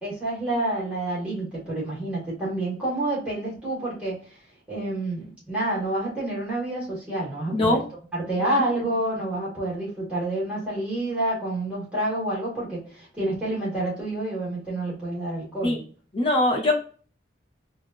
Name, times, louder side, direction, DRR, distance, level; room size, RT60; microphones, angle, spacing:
voice 1, 0.0-4.2 4.7-7.8 8.1-15.8, right 1 dB, 5° right, -8 dB, 1.6 m, -28 dB
voice 2, 7.5-7.8 8.4-8.6 15.6-15.8 16.1-16.8, left 2 dB, 30° left, 0 dB, 0.8 m, -22 dB
3.4 x 2.6 x 2.5 m, 0.40 s
head